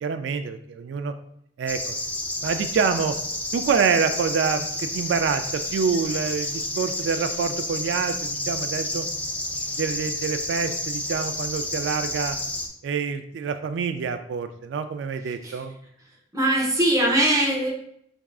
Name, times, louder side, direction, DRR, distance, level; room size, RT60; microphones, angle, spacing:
voice 1, 0.0-1.1 1.6-2.0 2.4-3.1 3.5-9.1 9.7-12.4 12.8-15.8, right 5 dB, 75° right, 9 dB, 0.3 m, -26 dB
sound 1, 1.7-12.7, left 1 dB, 10° left, 0.4 m, -30 dB
voice 2, 16.3-17.7, right 1 dB, 20° right, -3 dB, 1.0 m, -21 dB
4.7 x 3.5 x 2.3 m, 0.71 s
head